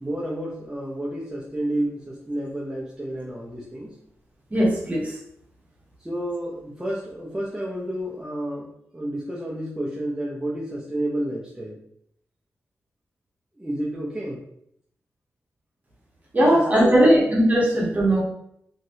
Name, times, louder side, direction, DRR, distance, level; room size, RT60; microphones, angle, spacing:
voice 1, 0.0-3.9 6.0-8.7 8.9-11.8 13.6-14.4 16.4-17.2, right 1 dB, 10° right, -6 dB, 0.6 m, -30 dB
voice 2, 4.5-5.0 16.3-18.2, right 1 dB, 30° right, -4 dB, 1.1 m, -18 dB
3.0 x 2.7 x 2.7 m, 0.72 s
cardioid pair, 85°, 5 cm